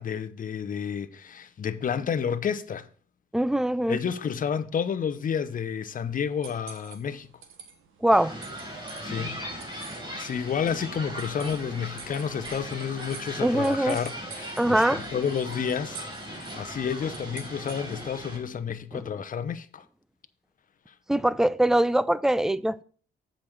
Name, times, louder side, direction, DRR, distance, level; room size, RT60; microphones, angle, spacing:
voice 1, 0.0-2.9 3.9-7.3 9.0-9.4 10.1-14.8 15.1-19.8, left 7 dB, 45° left, 0.8 m, -30 dB
voice 2, 3.3-4.0 8.0-8.3 13.4-14.0 14.6-15.0 18.9-19.0 21.1-22.8, right 1 dB, 5° right, 0.4 m, -22 dB
sound 1, 5.4-18.2, right 7 dB, 85° right, 1.2 m, -49 dB
sound 2, 8.1-18.4, equal, 20° right, 4.2 m, -38 dB
7.7 x 5.2 x 5.7 m
cardioid pair, 90°, 20 cm